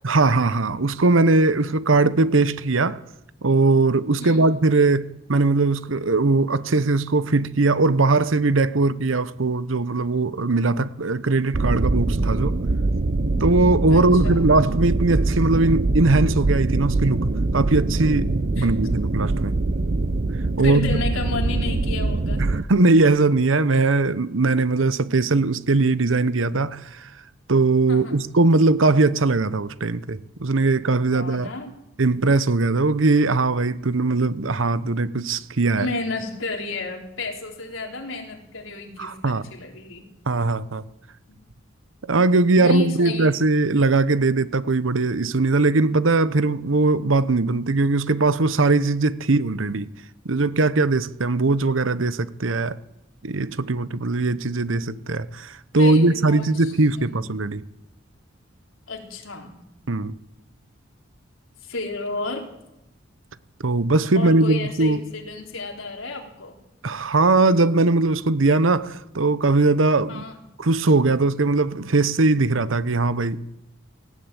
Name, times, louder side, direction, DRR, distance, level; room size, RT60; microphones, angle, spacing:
voice 1, 0.0-3.0 3.4-5.0 5.3-12.6 13.4-19.5 20.6-21.0 22.4-27.1 27.5-31.5 32.0-35.9 39.0-39.4 40.3-40.8 42.1-49.9 50.2-52.8 53.2-57.6 59.9-60.1 63.6-65.0 66.8-70.2 70.6-73.4, right 3 dB, 80° right, 0.9 m, -20 dB
sound 1, 11.5-22.6, right 2 dB, 45° right, 0.7 m, -23 dB
voice 2, 13.9-14.5 18.6-18.7 20.6-22.4 27.9-28.1 31.1-31.8 35.7-40.1 42.6-43.3 55.7-57.2 58.9-59.5 61.6-62.5 64.1-66.6 70.1-70.4, left 3 dB, 90° left, 3.8 m, -32 dB
18.5 x 16.0 x 9.0 m
head